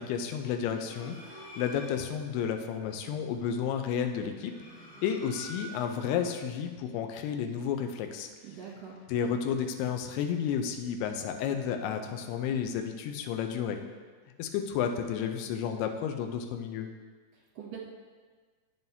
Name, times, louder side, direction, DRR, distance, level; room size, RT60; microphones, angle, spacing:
voice 1, 0.0-4.5 5.0-8.3 9.1-13.8 14.4-16.9, left 8 dB, 80° left, 5 dB, 2.4 m, -32 dB
sound 1, 0.6-2.2 4.1-6.1, equal, 45° left, 2.0 m, -47 dB
voice 2, 8.4-9.0 17.3-17.9, right 7 dB, 60° right, -8 dB, 3.1 m, -43 dB
9.2 x 7.2 x 2.7 m, 1.5 s
omnidirectional pair, 5.0 m